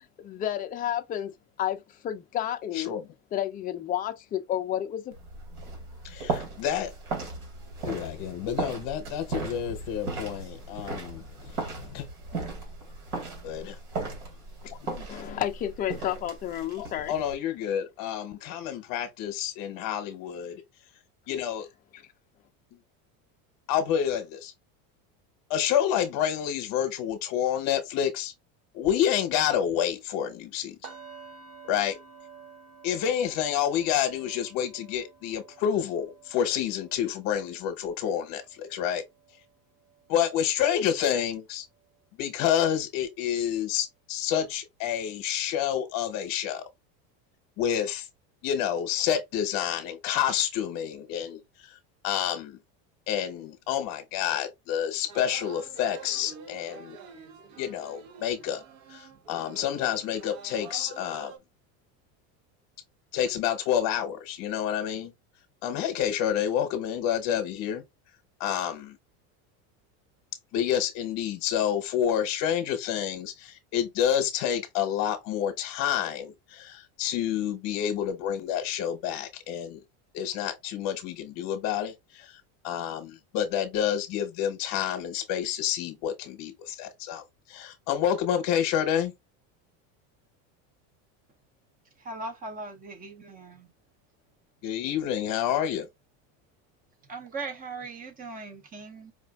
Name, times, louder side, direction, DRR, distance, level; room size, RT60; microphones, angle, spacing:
voice 1, 0.2-1.3 1.6-2.9 3.3-5.1 15.1-17.1, left 11 dB, 20° left, 0.4 m, -31 dB
voice 2, 2.7-3.1 6.0-6.9 7.8-12.1 13.4-13.8 14.7-15.1 16.8-20.6 21.3-21.7 22.7-22.8 23.7-24.5 25.5-28.3 28.7-30.8 31.7-32.0 32.8-39.0 40.1-41.7 42.1-46.6 47.6-48.1 48.4-52.6 53.1-57.0 57.6-58.6 58.9-61.3 63.1-65.1 65.6-67.8 68.4-69.0 70.5-79.8 80.1-89.1 94.6-95.9, left 9 dB, 55° left, 0.9 m, -29 dB
sound 1, 5.1-17.3, right 3 dB, 85° right, 2.4 m, -37 dB
sound 2, 30.8-40.8 41.1-41.4 41.8-42.0, right 6 dB, 45° right, 1.0 m, -51 dB
sound 3, 55.1-61.4, right 6 dB, 65° right, 0.9 m, -47 dB
voice 3, 92.0-93.7 97.1-99.1, right 3 dB, 20° right, 0.7 m, -39 dB
5.0 x 2.4 x 2.3 m
supercardioid pair, 140°, 42 cm